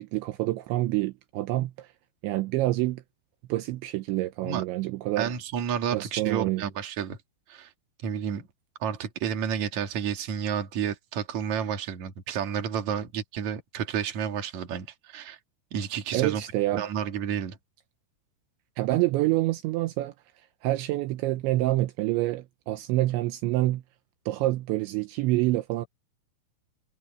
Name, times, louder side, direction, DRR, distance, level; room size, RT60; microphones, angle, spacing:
voice 1, 0.0-1.9 2.2-3.0 3.5-5.3 5.9-6.6 16.1-16.8 18.8-20.1 20.6-23.8 24.3-25.9, right 17 dB, 80° right, 2.9 m, -27 dB
voice 2, 5.2-7.2 7.5-7.7 8.0-8.5 8.8-15.4 15.7-16.4 16.7-17.6, right 8 dB, 45° right, 2.9 m, -31 dB
omnidirectional pair, 5.7 m